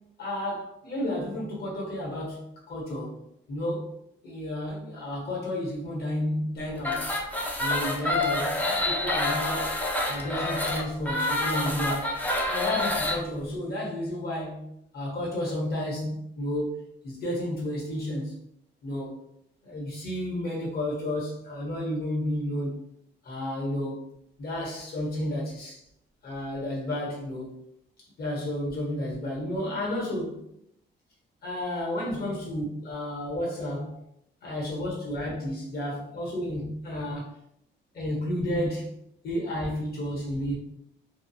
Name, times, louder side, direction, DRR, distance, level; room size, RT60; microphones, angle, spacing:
voice 1, 0.2-3.2 3.5-3.9 4.2-7.1 7.6-9.7 10.0-12.1 12.5-14.7 14.9-16.8 17.0-18.4 18.8-19.2 19.6-22.8 23.2-24.1 24.4-25.8 26.2-27.5 28.2-30.4 31.4-33.9 34.4-37.3 37.9-38.9 39.2-40.5, left 1 dB, 50° left, -3 dB, 1.2 m, -31 dB
sound 1, 6.8-13.2, left 2 dB, 10° left, 0.5 m, -28 dB
2.3 x 2.2 x 2.8 m, 0.77 s
cardioid pair, 90°, 20 cm